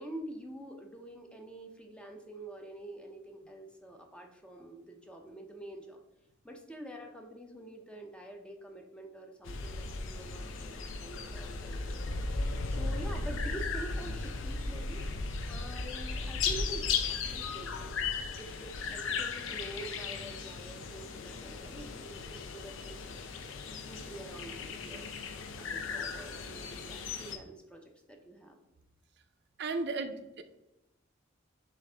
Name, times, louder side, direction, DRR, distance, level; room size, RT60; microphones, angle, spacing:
voice 1, 0.0-6.0 6.4-10.7 11.0-12.1 12.7-15.0 15.5-17.9 18.4-23.0 23.7-25.1 25.6-28.6, right 1 dB, 5° left, 3 dB, 0.4 m, -47 dB
sound 1, 9.5-27.4, left 4 dB, 70° left, 0.5 m, -36 dB
voice 2, 29.6-30.4, right 3 dB, 55° right, 8 dB, 0.4 m, -35 dB
6.3 x 2.5 x 3.3 m, 0.90 s
head